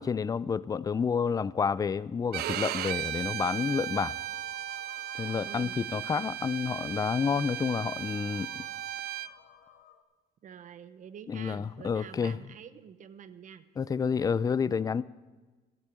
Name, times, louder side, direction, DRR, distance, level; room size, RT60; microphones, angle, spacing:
voice 1, 0.0-4.1 5.2-8.6 11.3-12.4 13.8-15.0, left 6 dB, 20° left, 0.4 m, -29 dB
sound 1, 1.5-10.0, left 9 dB, 75° left, 1.3 m, -58 dB
Bowed string instrument, 2.3-9.3, right 13 dB, 65° right, 0.5 m, -36 dB
voice 2, 5.4-5.7 10.4-13.7 14.1-14.6, right 8 dB, 50° right, 0.9 m, -47 dB
13.0 x 8.4 x 8.3 m
cardioid pair, 110°, 17 cm